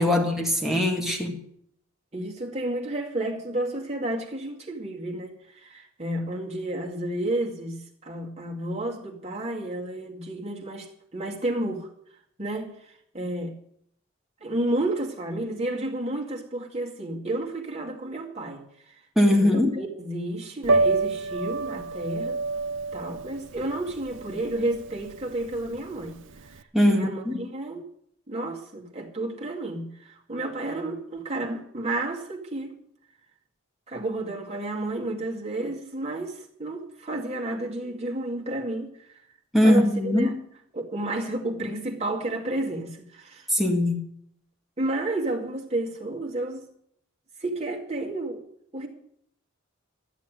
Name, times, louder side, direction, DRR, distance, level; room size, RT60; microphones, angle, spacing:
voice 1, 0.0-1.4 19.2-19.7 26.7-27.4 39.5-40.3 43.5-44.0, left 1 dB, ahead, 1.9 m, -21 dB
voice 2, 2.1-11.9 12.4-13.6 14.4-19.0 19.3-22.4 22.9-26.6 26.9-27.9 28.3-32.7 33.9-39.1 39.6-40.4 40.7-43.5 44.8-46.7 47.4-48.4 48.7-48.9, right 1 dB, 30° right, 2.2 m, -31 dB
Piano, 20.6-26.6, right 3 dB, 60° right, 0.6 m, -28 dB
12.5 x 7.3 x 9.1 m
head